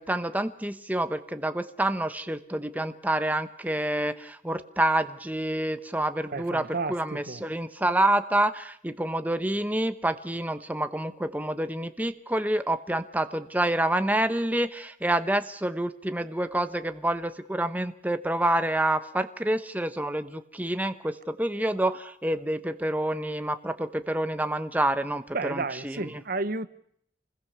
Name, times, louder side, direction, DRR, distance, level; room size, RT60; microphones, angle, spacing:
voice 1, 0.0-26.2, right 1 dB, 10° right, 1.0 m, -28 dB
voice 2, 6.3-7.4 25.3-26.7, right 3 dB, 50° right, 1.0 m, -32 dB
29.0 x 20.5 x 6.8 m
head